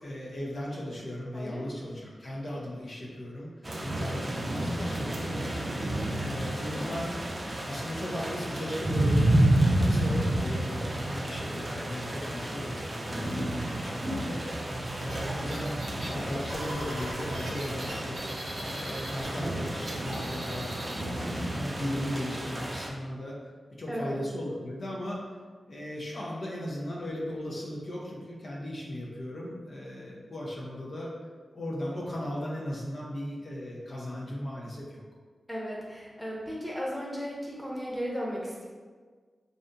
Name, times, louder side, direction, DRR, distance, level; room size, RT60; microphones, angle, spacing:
voice 1, 0.0-3.5 3.8-7.3 7.6-9.4 9.7-14.7 14.9-18.3 18.7-23.4 23.8-25.2 25.7-31.1 31.5-35.0, equal, 60° left, -4 dB, 0.5 m, -37 dB
voice 2, 1.3-1.6 23.9-24.2 35.5-38.7, equal, 5° right, -5 dB, 0.8 m, -35 dB
sound 1, 3.6-22.9, right 1 dB, 40° right, 0.5 m, -30 dB
sound 2, 15.1-19.3 19.6-21.0, right 1 dB, 90° right, 0.7 m, -41 dB
2.7 x 2.4 x 2.2 m, 1.5 s
cardioid pair, 40°, 0 cm